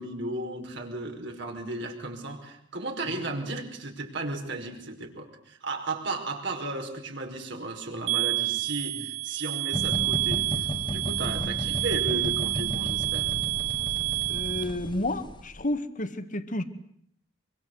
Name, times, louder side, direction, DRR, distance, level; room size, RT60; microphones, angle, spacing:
voice 1, 0.0-10.5 10.9-13.3, right 2 dB, 65° right, 3 dB, 5.4 m, -35 dB
sound 1, 8.1-14.6, right 20 dB, 85° right, 3.2 m, -29 dB
sound 2, 9.7-15.6, left 1 dB, 25° left, 1.6 m, -34 dB
voice 2, 14.3-16.6, left 1 dB, 45° left, 10 dB, 1.9 m, -31 dB
25.5 x 24.0 x 8.2 m, 0.68 s
head